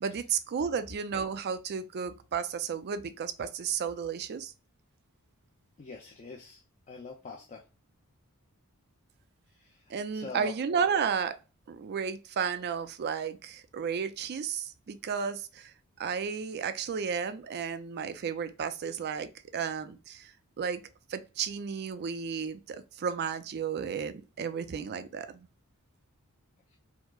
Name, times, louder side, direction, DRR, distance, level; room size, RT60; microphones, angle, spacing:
voice 1, 0.0-4.5 9.9-11.4 11.7-15.7 16.0-20.3 20.6-20.8 21.1-25.5, right 6 dB, 45° right, 0.4 m, -33 dB
voice 2, 5.8-6.6 6.9-7.6 10.1-10.5, left 3 dB, 35° left, 0.5 m, -42 dB
4.4 x 2.0 x 2.3 m
head